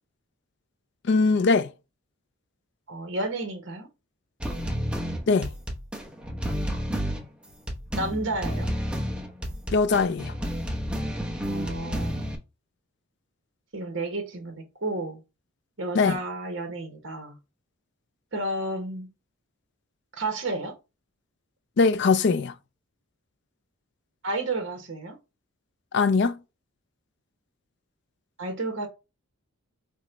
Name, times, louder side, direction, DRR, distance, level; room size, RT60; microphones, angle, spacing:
voice 1, 1.0-1.7 5.3-5.5 9.7-10.3 15.9-16.2 21.8-22.5 25.9-26.4, left 4 dB, 50° left, 0.4 m, -21 dB
voice 2, 2.9-3.9 7.9-8.7 11.4-12.3 13.7-15.2 15.8-17.4 18.3-19.1 20.1-20.7 24.2-25.1 28.4-28.9, right 2 dB, 55° right, 1.2 m, -31 dB
sound 1, 4.4-12.4, equal, 5° right, 0.8 m, -30 dB
5.1 x 2.2 x 3.9 m
head